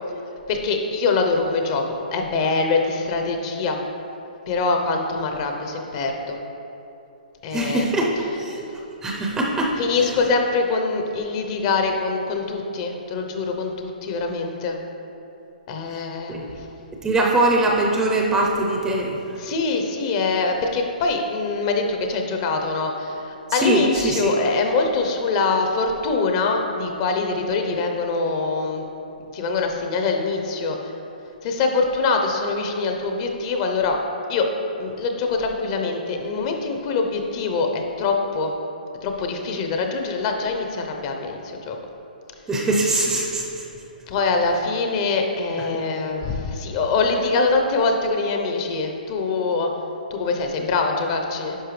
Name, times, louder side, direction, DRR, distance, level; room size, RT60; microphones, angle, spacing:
voice 1, 0.5-1.8 2.1-3.8 4.5-6.4 7.4-7.9 8.6-8.7 9.8-14.8 15.7-16.7 19.4-28.8 29.2-30.9 31.4-34.0 34.3-34.5 34.8-38.5 39.0-41.8 44.1-49.7 50.1-51.6, left 3 dB, 35° left, 3 dB, 0.8 m, -24 dB
voice 2, 7.5-8.1 8.4-8.6 9.0-9.8 16.3-16.5 17.0-19.2 23.5-24.3 42.5-43.6, right 2 dB, 10° right, -1 dB, 0.6 m, -21 dB
10.0 x 5.6 x 3.3 m, 2.8 s
hypercardioid pair, 150°, 5 cm